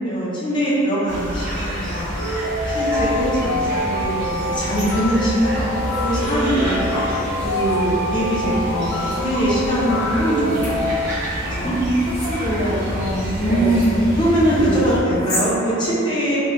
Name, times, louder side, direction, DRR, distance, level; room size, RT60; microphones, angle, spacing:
voice 1, 0.0-2.1 2.6-5.6 6.0-6.9 7.4-11.1 11.6-11.7 13.3-16.4, right 1 dB, 20° left, -8 dB, 0.6 m, -22 dB
sound 1, 1.1-15.0, equal, 50° right, 0.9 m, -28 dB
sound 2, 2.1-10.8, left 1 dB, 65° left, 0.9 m, -26 dB
sound 3, 3.6-3.7 4.0-5.2 5.6-6.3 6.9-7.8 8.4-9.2 9.9-11.2 11.5-14.0 14.5-15.5 15.9-16.0, left 1 dB, 90° left, 1.3 m, -33 dB
voice 2, 11.6-13.7, equal, 25° right, -11 dB, 0.6 m, -24 dB
3.0 x 2.2 x 2.9 m, 2.9 s
head